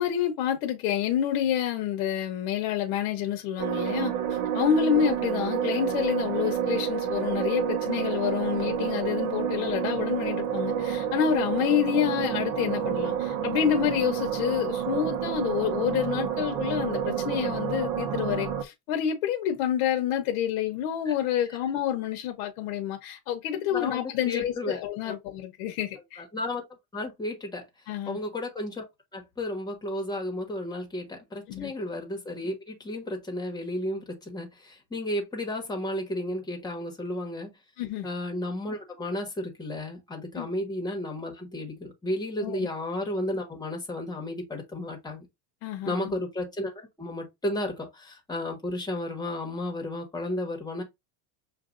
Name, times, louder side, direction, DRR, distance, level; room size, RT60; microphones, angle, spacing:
voice 1, 0.0-26.2 27.9-28.2 31.5-31.7 37.8-38.1 40.3-40.5 42.4-42.7 45.6-46.1, left 10 dB, 80° left, 0.9 m, -28 dB
sound 1, 3.6-18.6, right 9 dB, 55° right, 0.8 m, -29 dB
voice 2, 23.7-25.1 26.2-26.6 26.9-27.6 28.1-28.8 29.1-37.5 38.0-45.2 45.8-50.8, left 1 dB, 10° left, 1.3 m, -33 dB
6.6 x 2.6 x 2.5 m
cardioid pair, 150°, 42 cm